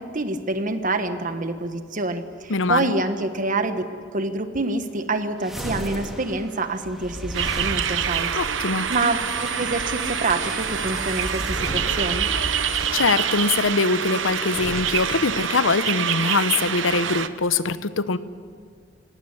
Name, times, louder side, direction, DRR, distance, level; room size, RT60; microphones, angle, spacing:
voice 1, 0.0-3.8 4.1-8.3 8.9-12.3, right 2 dB, 45° right, 9 dB, 1.4 m, -26 dB
voice 2, 2.5-2.9 8.3-8.9 12.9-18.2, left 4 dB, 90° left, 14 dB, 0.8 m, -23 dB
sound 1, 5.4-13.7 14.4-15.2, equal, ahead, 2.3 m, -34 dB
sound 2, 7.3-17.3, right 8 dB, 70° right, 0.8 m, -26 dB
19.5 x 16.5 x 9.9 m, 2.1 s
head